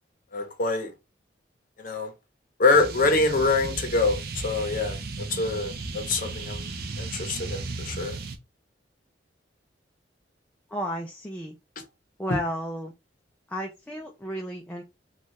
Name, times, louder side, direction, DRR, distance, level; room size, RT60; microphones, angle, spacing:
voice 1, 0.3-0.9 1.8-2.1 2.6-5.0 5.3-6.6 7.0-8.2, left 3 dB, 50° left, 0.7 m, -25 dB
sound 1, 2.7-8.4, right 3 dB, 55° right, 0.5 m, -35 dB
voice 2, 10.7-11.6 12.2-12.9 13.5-14.8, equal, 10° left, 0.4 m, -33 dB
2.6 x 2.3 x 3.1 m
head